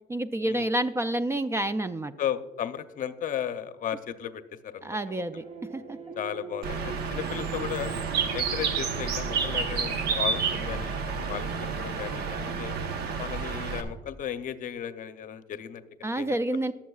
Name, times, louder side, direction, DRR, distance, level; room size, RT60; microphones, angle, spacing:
voice 1, 0.1-2.1 4.8-5.4 5.7-6.0 16.0-16.7, right 1 dB, 15° right, 12 dB, 0.3 m, -28 dB
voice 2, 2.2-5.4 6.2-7.9 8.3-11.5 11.8-12.8 13.2-16.4, left 9 dB, 50° left, 11 dB, 0.6 m, -35 dB
sound 1, 5.3-13.2, right 4 dB, 35° right, 1.2 m, -44 dB
Bird, 6.6-13.8, right 5 dB, 75° right, 1.0 m, -30 dB
20.5 x 7.2 x 2.4 m, 1.2 s
cardioid pair, 110°, 17 cm